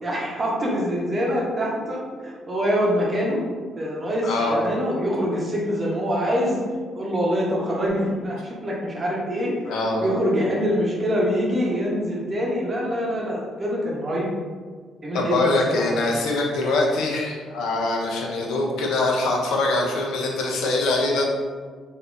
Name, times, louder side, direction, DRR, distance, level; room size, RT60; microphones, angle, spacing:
voice 1, 0.0-3.4 3.8-6.6 6.9-9.5 10.0-14.3 15.0-16.1, equal, 30° right, -4 dB, 0.8 m, -25 dB
voice 2, 4.2-4.6 9.7-10.1 15.1-21.3, left 2 dB, 85° left, -1 dB, 0.6 m, -23 dB
3.4 x 2.7 x 2.5 m, 1.5 s
cardioid pair, 90°, 0 cm